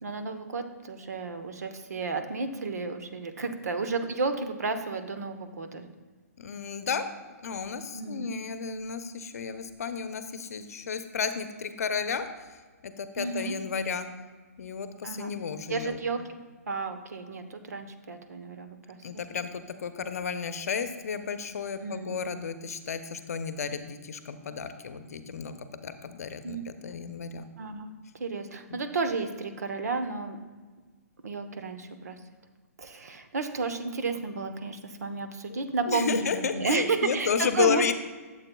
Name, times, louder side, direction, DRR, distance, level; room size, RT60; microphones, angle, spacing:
voice 1, 0.0-5.9 7.9-8.3 13.2-13.6 15.0-15.3 15.7-16.2 16.7-19.2 21.8-22.2 26.4-26.6 27.6-27.9 28.2-30.4 31.2-32.2 32.8-37.8, right 4 dB, 75° right, 7 dB, 1.0 m, -32 dB
voice 2, 6.4-7.0 7.4-12.5 12.8-14.1 14.6-16.0 19.0-27.5 28.7-28.8 35.5-35.6 35.8-37.9, left 6 dB, 70° left, 9 dB, 0.7 m, -32 dB
12.5 x 7.6 x 2.3 m, 1.4 s
hypercardioid pair, 135°, 9 cm